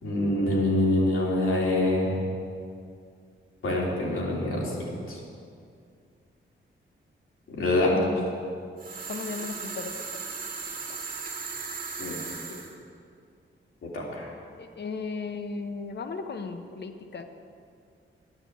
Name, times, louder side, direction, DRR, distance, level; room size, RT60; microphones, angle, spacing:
voice 1, 0.0-2.2 3.6-5.2 7.5-7.9 12.0-12.2 13.8-14.3, left 1 dB, 90° left, -3 dB, 3.4 m, -26 dB
voice 2, 7.9-8.2 9.1-9.9 14.6-17.2, left 4 dB, 55° left, 7 dB, 1.0 m, -35 dB
sound 1, 8.8-12.7, right 4 dB, 45° right, 2.1 m, -37 dB
10.5 x 9.9 x 8.3 m, 2.3 s
wide cardioid pair, 115°, 21 cm